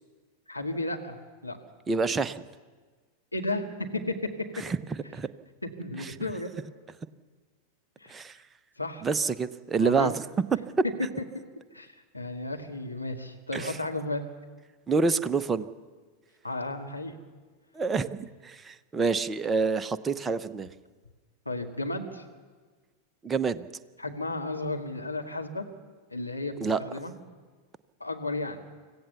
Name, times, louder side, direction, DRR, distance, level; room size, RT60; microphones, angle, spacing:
voice 1, 0.5-1.2 1.4-1.6 3.3-4.2 5.6-6.5 8.0-8.1 8.8-9.1 9.8-10.1 11.7-14.3 16.4-17.2 21.5-22.2 24.0-25.7 26.1-27.1 28.0-28.6, left 2 dB, 85° left, 3 dB, 2.0 m, -33 dB
voice 2, 1.9-2.4 4.6-5.3 6.0-6.1 8.1-8.4 9.0-10.1 13.5-13.8 14.9-15.7 17.8-20.7 23.2-23.7 26.6-26.8, right 4 dB, 15° right, 12 dB, 0.8 m, -27 dB
25.5 x 16.0 x 7.0 m, 1.4 s
figure-of-eight pair, 90°, 0 cm